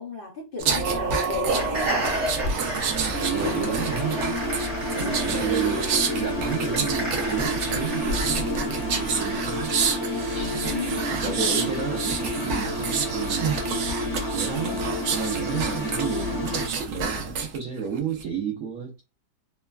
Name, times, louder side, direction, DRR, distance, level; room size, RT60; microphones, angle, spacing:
voice 1, 0.0-2.0 5.0-5.5 10.3-11.4, left 5 dB, 70° left, 0.5 m, -36 dB
sound 1, 0.6-17.6 18.0-18.2, right 4 dB, 85° right, 0.6 m, -28 dB
sound 2, 1.4-8.2, equal, 45° right, 1.4 m, -31 dB
voice 2, 2.8-4.5 4.9-5.8 6.2-9.8 10.3-10.6 11.1-13.6 14.3-19.0, right 8 dB, 65° right, 0.9 m, -31 dB
sound 3, 3.1-16.7, left 1 dB, 45° left, 0.9 m, -31 dB
3.2 x 2.1 x 2.2 m
omnidirectional pair, 1.9 m